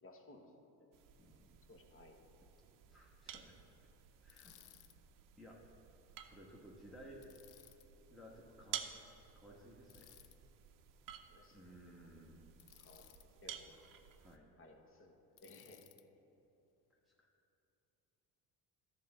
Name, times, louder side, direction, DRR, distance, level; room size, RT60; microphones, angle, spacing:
voice 1, 0.0-0.5 1.7-2.1 11.3-11.7 12.8-13.0 13.4-13.8 14.6-15.8, left 2 dB, 35° left, 3 dB, 1.2 m, -59 dB
sound 1, 0.9-14.4, right 10 dB, 55° right, 0.7 m, -53 dB
voice 2, 1.2-1.6 2.9-3.6 4.2-4.5 5.4-5.6 6.2-7.3 8.1-8.9 9.3-10.1 11.5-12.5 14.2-14.5 17.1-17.3, equal, ahead, -4 dB, 1.1 m, -57 dB
Bicycle, 4.3-5.0 7.2-7.9 9.9-10.4 12.6-13.3 15.4-16.0, left 14 dB, 55° left, 0.4 m, -61 dB
11.0 x 3.9 x 6.9 m, 3.0 s
supercardioid pair, 90°, 38 cm